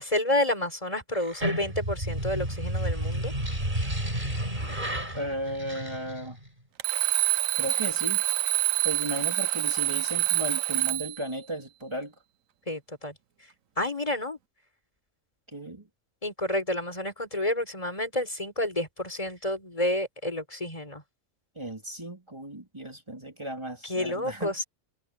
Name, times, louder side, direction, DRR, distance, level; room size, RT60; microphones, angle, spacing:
voice 1, 0.0-3.3 12.7-13.1 13.8-14.4 16.2-21.0 23.8-24.6, left 1 dB, 25° left, 4.4 m, -29 dB
sound 1, 1.2-6.5, right 1 dB, 35° right, 6.1 m, -31 dB
voice 2, 5.1-6.4 7.6-8.2 8.8-12.1 15.5-15.9 21.5-24.5, right 1 dB, 20° right, 3.2 m, -35 dB
Alarm, 6.8-11.2, right 14 dB, 80° right, 1.1 m, -26 dB
omnidirectional pair, 1.4 m